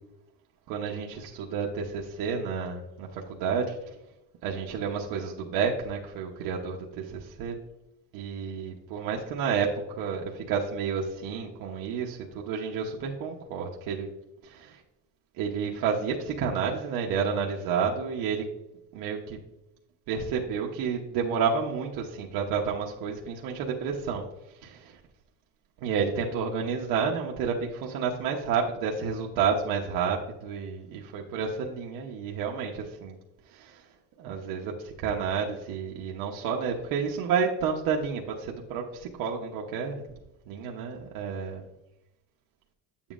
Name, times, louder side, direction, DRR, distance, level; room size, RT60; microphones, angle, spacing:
voice 1, 0.7-3.9 4.4-7.6 8.1-14.1 14.4-14.8 15.4-18.4 18.9-19.4 20.1-25.0 25.8-33.2 33.5-33.8 34.2-40.0 40.5-41.7, right 6 dB, 60° right, -1 dB, 0.9 m, -30 dB
8.8 x 7.2 x 2.5 m, 0.91 s
cardioid pair, 160°, 40 cm